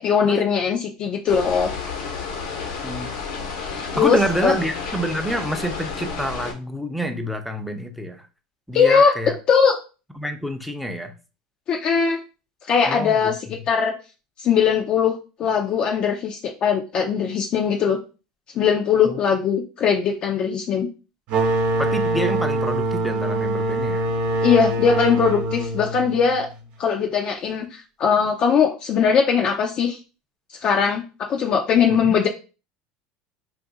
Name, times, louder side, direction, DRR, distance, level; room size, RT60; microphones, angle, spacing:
voice 1, 0.0-1.7 3.6-4.6 8.7-9.1 9.5-9.8 11.7-12.2 12.7-13.9 14.4-18.0 18.5-20.9 24.4-26.5 26.8-30.0 30.6-32.3, left 6 dB, 45° left, 2 dB, 0.5 m, -20 dB
sound 1, 1.3-6.5, left 5 dB, 80° left, 1.0 m, -31 dB
voice 2, 4.0-8.2 8.7-9.4 10.2-11.1 12.9-13.3 19.1-19.2 21.8-24.0 31.9-32.2, equal, ahead, 5 dB, 0.5 m, -27 dB
sound 2, 21.3-26.7, right 1 dB, 55° right, 0.8 m, -24 dB
2.6 x 2.5 x 3.8 m, 0.33 s
supercardioid pair, 110°, 3 cm